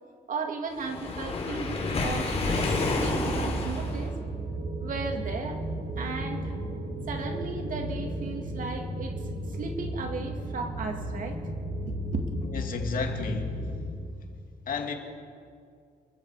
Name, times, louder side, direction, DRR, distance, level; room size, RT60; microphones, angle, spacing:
voice 1, 0.3-4.2 4.8-5.6 6.0-6.5 7.1-9.1 9.5-11.4 11.9-12.3, right 4 dB, 50° right, 4 dB, 2.5 m, -35 dB
Waves surf, 0.8-4.1, left 3 dB, 35° left, 4.1 m, -29 dB
sound 1, 2.5-13.9, right 1 dB, 85° right, 7.5 m, -34 dB
voice 2, 12.5-13.5 14.7-14.9, left 4 dB, 50° left, 3 dB, 2.6 m, -31 dB
28.0 x 23.0 x 5.1 m, 2.2 s
cardioid pair, 160°, 18 cm